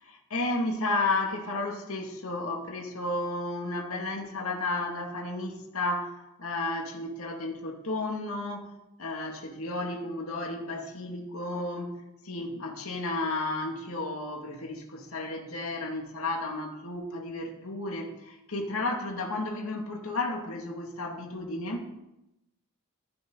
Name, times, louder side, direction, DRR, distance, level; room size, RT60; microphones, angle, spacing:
voice 1, 0.0-8.7 9.0-12.0 12.2-21.9, left 2 dB, 70° left, 2 dB, 2.2 m, -33 dB
15.0 x 13.0 x 3.9 m, 0.89 s
head